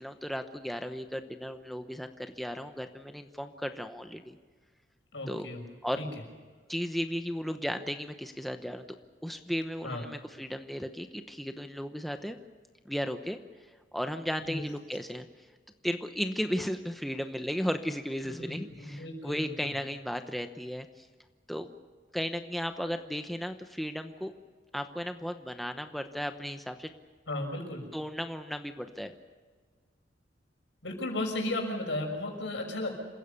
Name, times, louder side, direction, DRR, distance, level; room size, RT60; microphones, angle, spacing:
voice 1, 0.0-4.4 5.3-5.5 5.8-6.0 6.7-8.9 9.2-12.4 12.8-13.4 13.9-15.5 15.8-21.1 21.5-21.7 22.1-24.3 24.7-26.9 27.9-29.1, equal, ahead, 6 dB, 0.9 m, -35 dB
voice 2, 5.1-5.6 6.0-6.1 9.8-10.0 14.4-14.6 18.2-19.7 27.3-27.8 30.8-32.9, left 1 dB, 75° left, 2 dB, 6.3 m, -35 dB
28.0 x 16.0 x 7.1 m, 1.5 s
head